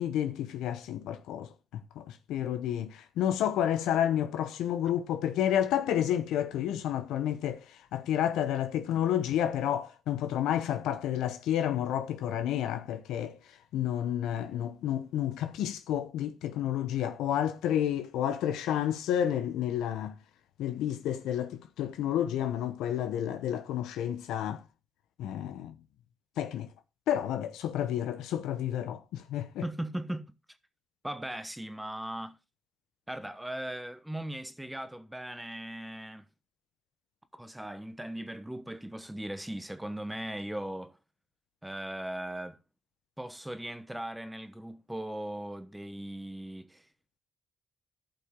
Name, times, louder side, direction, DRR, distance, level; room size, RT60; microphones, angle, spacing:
voice 1, 0.0-1.5 2.0-7.6 7.9-13.4 13.7-20.1 20.6-24.6 25.2-25.7 26.4-26.7 27.1-29.6, left 10 dB, 90° left, 0.8 m, -30 dB
voice 2, 29.6-30.3 31.0-32.4 33.1-36.2 37.3-41.0 41.6-42.6 43.2-46.9, right 1 dB, 5° right, 1.0 m, -38 dB
13.5 x 5.7 x 3.6 m
cardioid pair, 90°, 0 cm